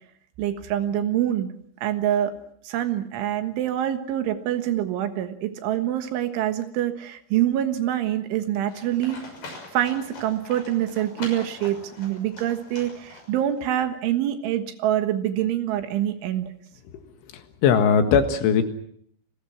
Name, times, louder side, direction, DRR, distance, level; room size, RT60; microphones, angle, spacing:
voice 1, 0.4-1.5 1.8-2.3 2.7-9.2 9.7-16.5, right 11 dB, 75° right, 8 dB, 3.8 m, -25 dB
Livestock farm animals working animals, 8.7-13.6, left 2 dB, 45° left, 7.9 m, -42 dB
voice 2, 17.3-18.6, left 6 dB, 75° left, 7 dB, 4.1 m, -19 dB
30.0 x 20.5 x 6.1 m, 0.63 s
omnidirectional pair, 5.7 m